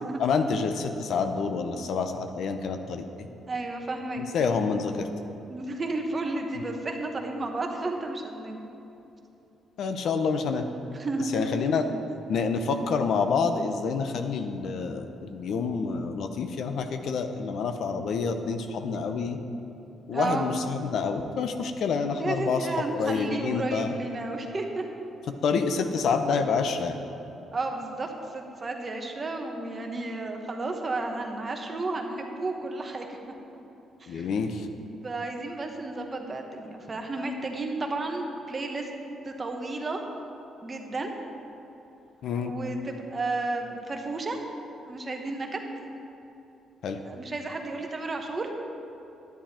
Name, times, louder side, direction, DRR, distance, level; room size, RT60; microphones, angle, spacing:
voice 1, 0.2-3.3 4.3-5.1 9.8-10.7 11.3-11.8 12.3-19.4 20.1-23.9 25.4-27.0 34.1-34.7 42.2-42.5 46.8-47.0, left 5 dB, 70° left, 7 dB, 0.7 m, -28 dB
voice 2, 3.5-4.2 5.5-8.6 10.9-11.3 20.1-20.5 22.2-24.8 27.5-33.2 34.0-34.3 35.0-38.9 39.2-40.0 40.6-41.1 42.4-44.4 44.8-45.6 46.9-48.5, right 2 dB, 35° right, 3 dB, 1.2 m, -32 dB
10.5 x 9.6 x 4.3 m, 3.0 s
cardioid pair, 90°, 0 cm